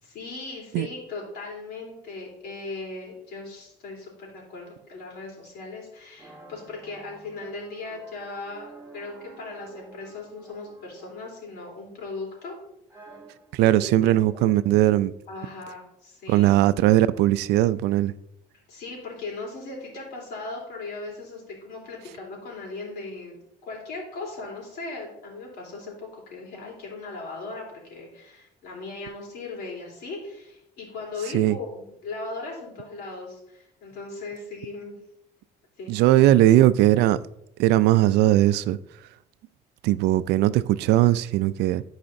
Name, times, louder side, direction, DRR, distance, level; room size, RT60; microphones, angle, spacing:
voice 1, 0.0-12.5 13.6-14.4 15.3-16.5 18.7-35.0 35.8-35.9, left 3 dB, 75° left, 3.3 m, -38 dB
sound 1, 6.2-11.4 11.8-12.4 12.9-13.6, right 4 dB, 10° right, 1.6 m, -49 dB
voice 2, 13.5-15.1 16.3-18.1 31.3-31.6 35.9-37.2 37.6-38.8 39.8-41.8, right 14 dB, 85° right, 0.4 m, -19 dB
13.5 x 4.9 x 2.6 m
cardioid pair, 110°, 17 cm